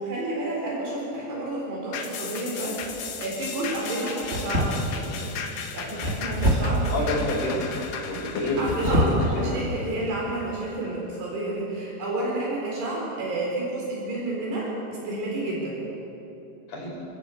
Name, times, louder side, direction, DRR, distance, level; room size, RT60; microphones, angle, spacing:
voice 1, 0.0-5.3 5.7-7.1 8.4-15.8, right 2 dB, 70° right, -4 dB, 6.4 m, -30 dB
sound 1, 1.9-10.6 11.1-11.2, left 6 dB, 85° left, 4.1 m, -36 dB
sound 2, 2.8-3.2 4.2-5.1 6.0-6.9 8.5-9.3 9.8-10.0 10.5-10.6, equal, 20° right, 2.3 m, -25 dB
voice 2, 6.9-7.8 8.1-9.6 16.7-16.9, left 1 dB, 55° left, -3 dB, 6.8 m, -28 dB
28.5 x 14.5 x 8.3 m, 3.0 s
omnidirectional pair, 5.2 m